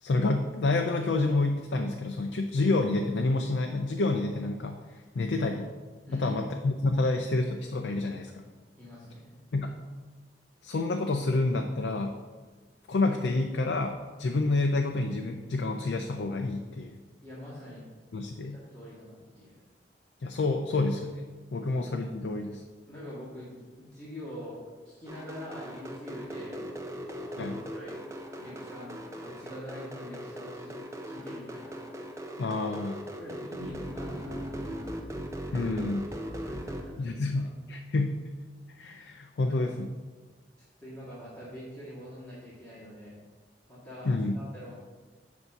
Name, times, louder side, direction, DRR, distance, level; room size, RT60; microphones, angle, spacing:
voice 1, 0.0-5.7 6.1-8.4 9.5-9.8 10.6-12.2 12.9-17.0 18.1-18.6 20.2-22.6 27.4-27.6 32.4-33.0 35.5-36.0 37.0-38.2 38.8-39.9 44.1-44.4, left 2 dB, 70° left, 4 dB, 0.4 m, -28 dB
voice 2, 6.1-6.4 8.7-9.3 17.2-17.9 18.5-19.5 21.6-22.0 22.9-28.0 28.4-30.7 31.0-31.8 33.2-35.1 35.5-35.7 36.4-37.4 39.4-39.6 40.8-43.2 43.7-44.7, left 1 dB, 10° left, -10 dB, 1.6 m, -45 dB
sound 1, 25.1-36.8, equal, 15° right, 0.6 m, -39 dB
8.0 x 2.7 x 5.8 m, 1.4 s
head